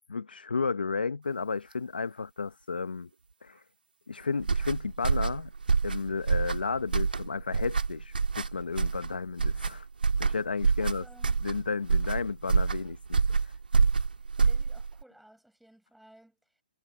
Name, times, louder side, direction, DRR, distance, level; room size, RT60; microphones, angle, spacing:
voice 1, 0.1-3.1 3.4-3.6 4.1-5.5 5.8-9.9 10.2-11.0 11.4-13.0 13.3-13.5, left 4 dB, 85° left, 1.4 m, -33 dB
sound 1, 4.4-15.0, right 5 dB, 85° right, 1.9 m, -27 dB
voice 2, 10.8-11.4 14.2-16.6, right 1 dB, ahead, 8.0 m, -57 dB
hypercardioid pair, 140°, 5 cm